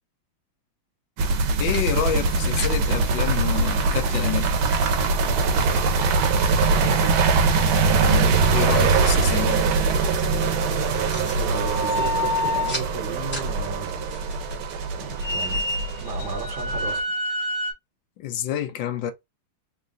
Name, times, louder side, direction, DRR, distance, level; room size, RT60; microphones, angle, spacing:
sound 1, 1.2-17.0, right 4 dB, 80° right, 1.6 m, -22 dB
sound 2, 1.3-15.6, equal, 5° left, 1.0 m, -43 dB
voice 1, 1.6-4.5 8.0-9.6 18.2-19.1, left 10 dB, 75° left, 1.2 m, -28 dB
voice 2, 6.6-7.2 8.8-9.4 11.3-13.9 14.9-15.6 16.0-17.0, right 5 dB, 55° right, 1.6 m, -35 dB
sound 3, 11.5-12.8 15.2-17.7, left 1 dB, 60° left, 1.5 m, -27 dB
3.9 x 2.3 x 3.7 m
omnidirectional pair, 2.3 m